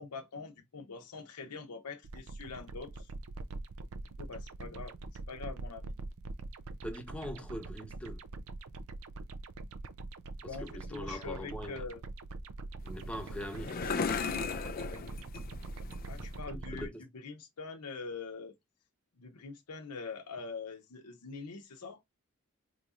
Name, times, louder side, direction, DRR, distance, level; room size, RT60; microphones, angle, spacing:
voice 1, 0.0-3.1 4.2-4.9 5.3-5.9 10.4-12.0 16.1-18.5 19.2-22.0, left 4 dB, 90° left, 0.7 m, -44 dB
sound 1, 2.0-16.9, right 2 dB, 65° right, 0.5 m, -43 dB
voice 2, 6.8-8.2 10.4-11.9 12.8-14.2 16.5-17.1, equal, 5° left, 0.8 m, -42 dB
sound 2, 12.8-16.4, left 5 dB, 40° left, 0.4 m, -37 dB
4.1 x 3.1 x 2.4 m
head